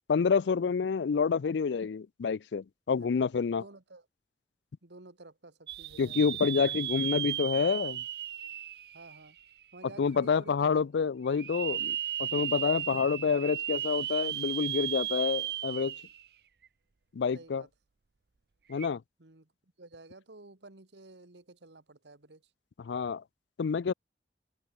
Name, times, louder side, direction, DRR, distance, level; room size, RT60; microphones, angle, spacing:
voice 1, 0.1-3.6 6.0-8.0 10.0-15.9 17.1-17.6 18.7-19.0 22.8-23.2 23.6-23.9, left 5 dB, 85° left, 0.4 m, -28 dB
voice 2, 3.0-4.1 4.8-6.3 8.9-9.4 9.7-10.8 12.9-13.1 17.3-17.7 19.2-19.5 19.8-22.5, right 2 dB, 85° right, 1.8 m, -52 dB
sound 1, 5.7-9.6 10.1-10.2 11.3-16.3 16.6-16.7 18.7-18.9, right 12 dB, 65° right, 0.6 m, -35 dB
open air
head